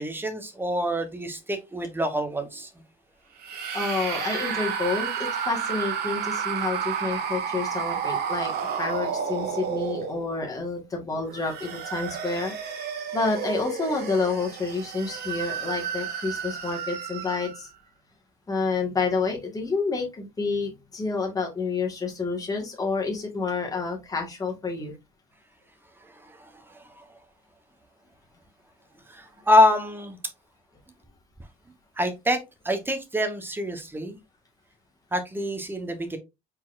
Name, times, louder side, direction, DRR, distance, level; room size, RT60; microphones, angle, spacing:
voice 1, 0.0-2.7 26.0-27.0 29.1-30.2 32.0-32.4 32.6-34.2 35.1-36.2, left 1 dB, 10° right, 1.1 m, -26 dB
sound 1, 3.4-10.5 11.2-17.7, right 7 dB, 70° right, 1.3 m, -31 dB
voice 2, 3.7-8.5 8.8-12.7 13.1-17.7 18.5-24.9, left 4 dB, 20° left, 1.7 m, -29 dB
4.3 x 4.2 x 2.5 m
cardioid pair, 110°, 17 cm